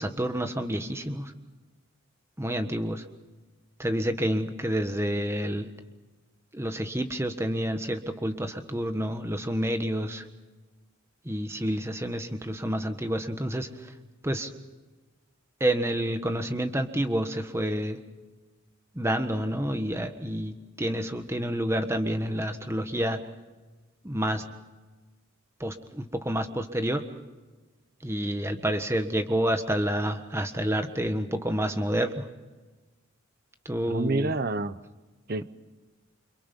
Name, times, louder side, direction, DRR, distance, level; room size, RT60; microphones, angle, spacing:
voice 1, 0.0-1.3 2.4-3.0 3.8-5.7 6.5-10.2 11.2-13.7 14.2-14.5 15.6-18.0 18.9-23.2 24.0-24.4 25.6-27.0 28.0-32.2 33.6-34.4, equal, 15° right, 7 dB, 1.4 m, -29 dB
voice 2, 33.9-34.8 35.3-35.4, right 2 dB, 50° right, 14 dB, 0.9 m, -28 dB
29.0 x 25.5 x 5.4 m, 1.2 s
head